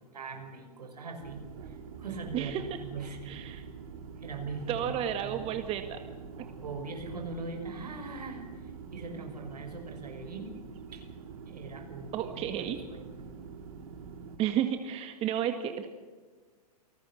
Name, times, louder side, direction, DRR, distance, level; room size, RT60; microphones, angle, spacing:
voice 1, 0.0-3.3 4.2-5.4 6.6-10.5 10.9-11.0 11.5-13.2, right 3 dB, 80° right, 5 dB, 6.0 m, -41 dB
sound 1, 1.2-14.4, right 5 dB, 60° right, 2.7 m, -45 dB
voice 2, 3.3-3.6 4.7-6.0 12.1-12.8 14.4-15.9, right 10 dB, 30° right, 7 dB, 1.8 m, -32 dB
28.5 x 19.5 x 6.5 m, 1.4 s
hypercardioid pair, 115°, 20 cm